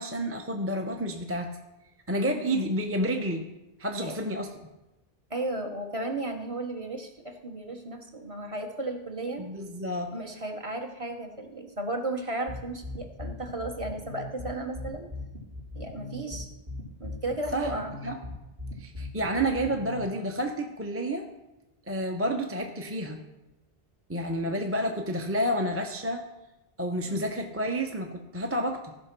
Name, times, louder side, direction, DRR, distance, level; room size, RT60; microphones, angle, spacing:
voice 1, 0.0-1.5 2.1-3.4 3.8-4.5 9.4-10.1 17.5-18.1 18.8-21.3 21.9-23.2 24.1-26.2 26.8-28.9, right 1 dB, 15° right, 3 dB, 0.7 m, -30 dB
voice 2, 5.3-9.4 10.1-15.0 15.7-16.5 17.0-17.9 27.0-27.3, right 2 dB, 35° right, 3 dB, 1.2 m, -34 dB
sound 1, 12.5-20.0, left 2 dB, 50° right, 2.8 m, -39 dB
15.0 x 5.1 x 6.0 m, 0.96 s
omnidirectional pair, 1.0 m